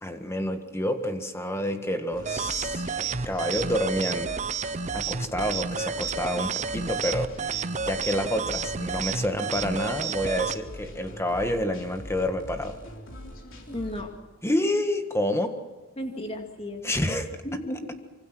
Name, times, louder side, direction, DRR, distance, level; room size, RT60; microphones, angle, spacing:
voice 1, 0.0-4.3 4.9-7.5 7.8-12.8 14.4-15.6 16.8-17.3, left 1 dB, 10° left, 6 dB, 1.6 m, -28 dB
sound 1, 2.1-14.0, equal, 65° left, 4.0 m, -43 dB
sound 2, 2.2-10.6, right 5 dB, 35° right, 0.7 m, -31 dB
voice 2, 13.7-14.1 16.0-17.1 17.4-18.0, left 1 dB, 30° left, 3 dB, 2.4 m, -34 dB
26.0 x 24.0 x 6.2 m, 1.2 s
head